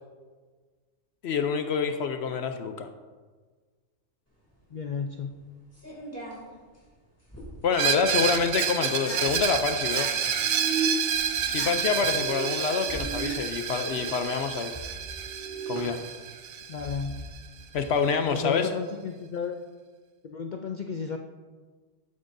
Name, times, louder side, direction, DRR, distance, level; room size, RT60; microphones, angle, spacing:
voice 1, 1.2-2.9 7.6-10.1 11.5-14.7 15.7-16.0 17.7-18.7, left 6 dB, 60° left, 8 dB, 0.8 m, -27 dB
sound 1, 4.4-18.2, right 1 dB, 10° left, 2.5 m, -45 dB
voice 2, 4.7-5.3 16.7-17.2 18.3-19.6 20.2-21.2, left 5 dB, 90° left, 5 dB, 0.4 m, -33 dB
Screech, 7.7-17.4, right 8 dB, 75° right, 1.1 m, -29 dB
sound 2, 8.9-9.2 9.7-10.0 10.3-10.9 11.3-12.5 12.8-13.3 13.6-14.1 15.1-15.8, right 7 dB, 35° left, 1.8 m, -36 dB
11.5 x 9.0 x 2.6 m, 1.4 s
omnidirectional pair, 1.4 m